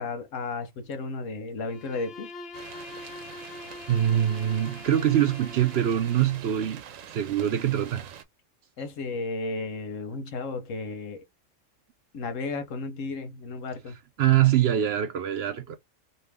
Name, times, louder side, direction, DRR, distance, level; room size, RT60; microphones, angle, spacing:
voice 1, 0.0-2.3 8.8-11.2 12.1-14.0, left 3 dB, 75° left, 1.3 m, -33 dB
Bowed string instrument, 1.6-6.5, left 3 dB, 55° left, 0.9 m, -43 dB
sound 1, 2.5-8.2, right 9 dB, 90° right, 1.1 m, -45 dB
voice 2, 3.9-6.8 7.1-8.1 14.2-15.8, right 11 dB, 65° right, 0.7 m, -24 dB
3.1 x 2.7 x 3.4 m
omnidirectional pair, 1.3 m